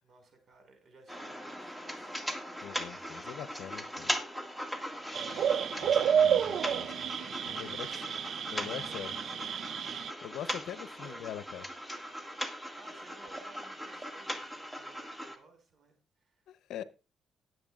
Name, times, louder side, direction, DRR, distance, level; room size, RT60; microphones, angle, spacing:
voice 1, 0.0-2.2 4.9-5.8 7.6-9.6 9.9-10.5 11.0-11.3 12.8-16.5 16.7-16.9, right 3 dB, 50° right, 5.2 m, -58 dB
sound 1, 1.1-15.4, equal, 5° right, 1.9 m, -39 dB
voice 2, 2.6-4.1 4.8-5.0 5.8-7.9 8.5-9.1 10.2-11.7 12.1-12.3 16.5-16.8, left 10 dB, 80° left, 0.7 m, -43 dB
sound 2, 5.1-10.1, right 8 dB, 65° right, 0.4 m, -30 dB
18.5 x 7.7 x 2.4 m
cardioid pair, 90°, 0 cm